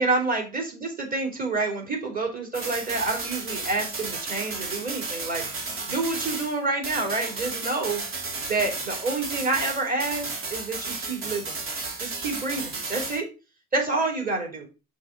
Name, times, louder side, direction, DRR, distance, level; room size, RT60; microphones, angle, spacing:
voice 1, 0.0-8.0 8.5-11.6 12.0-13.3 13.7-14.7, right 3 dB, 30° right, 2 dB, 3.0 m, -28 dB
sound 1, 2.5-6.6 6.8-13.2, right 3 dB, 45° right, 2.4 m, -33 dB
5.8 x 3.6 x 5.8 m, 0.31 s
supercardioid pair, 85°, 30 cm